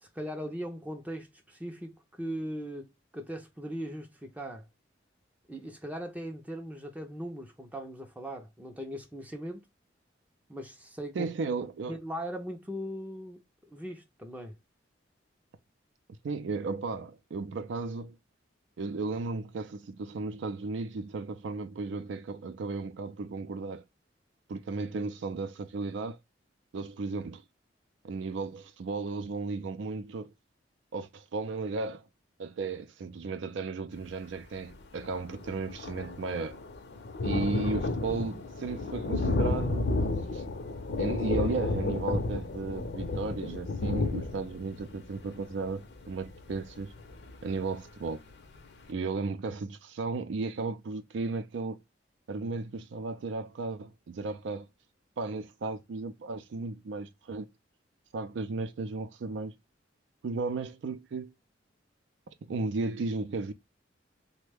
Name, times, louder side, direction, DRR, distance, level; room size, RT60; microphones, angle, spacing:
voice 1, 0.0-4.7 5.5-9.7 10.5-11.3 11.9-14.5, equal, 10° right, 0.4 m, -39 dB
voice 2, 11.1-12.0 16.2-18.2 18.8-23.8 24.5-26.2 26.7-27.4 28.0-30.3 30.9-32.0 32.4-36.6 37.2-39.9 40.3-40.4 41.0-46.9 47.4-48.2 48.9-51.8 52.3-54.7 55.2-57.5 58.1-59.5 60.2-61.3 62.5-63.5, right 3 dB, 75° right, 0.4 m, -35 dB
Thunder, 34.7-34.8 35.0-47.6 48.1-48.2 48.5-48.6, left 2 dB, 60° left, 0.6 m, -32 dB
3.2 x 2.1 x 3.3 m
head